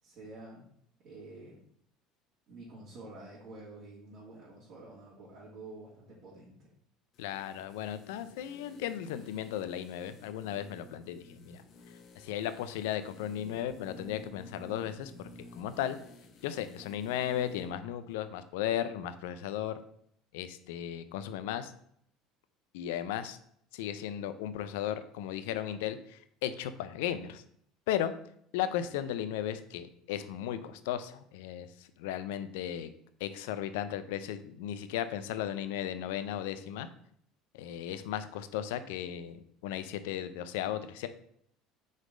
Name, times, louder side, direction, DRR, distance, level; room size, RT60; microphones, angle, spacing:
voice 1, 0.0-0.6 1.0-1.7 2.5-6.7, right 2 dB, 50° right, -8 dB, 2.5 m, -49 dB
sound 1, 7.1-17.8 18.1-18.2, left 2 dB, 55° left, 1.1 m, -53 dB
voice 2, 7.2-11.6 12.2-15.1 15.6-16.0 16.4-19.8 20.3-21.7 22.7-23.4 23.7-27.4 27.9-28.1 28.5-31.7 32.0-32.9 33.2-36.9 37.5-41.1, left 10 dB, 85° left, 11 dB, 0.5 m, -35 dB
4.9 x 4.1 x 5.1 m, 0.67 s
supercardioid pair, 90°, 0 cm